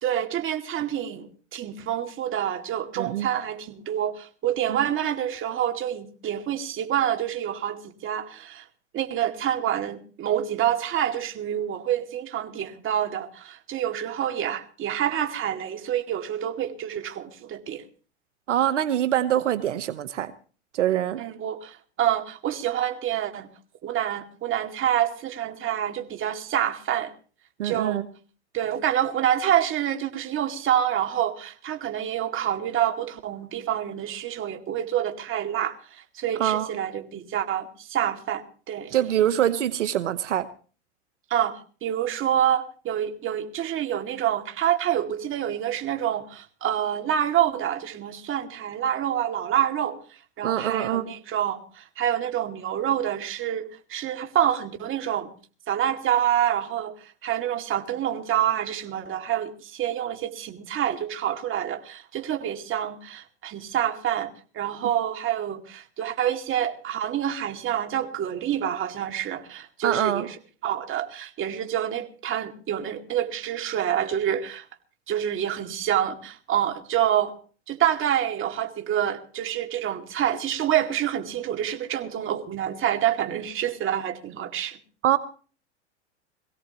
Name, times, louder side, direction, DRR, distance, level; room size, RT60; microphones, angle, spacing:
voice 1, 0.0-8.6 8.9-17.8 21.2-23.5 23.8-27.1 27.6-28.0 28.5-38.9 41.3-50.0 50.4-55.3 55.7-70.4 70.6-74.7 75.1-77.3 77.7-84.8, right 10 dB, 35° right, 2.3 m, -27 dB
voice 2, 3.0-3.3 18.5-20.3 20.7-21.2 27.6-28.0 36.4-36.7 38.9-40.5 50.4-51.0 69.8-70.3 85.0-85.2, right 11 dB, 85° right, 1.0 m, -24 dB
23.0 x 16.5 x 3.0 m
hypercardioid pair, 100°, 35 cm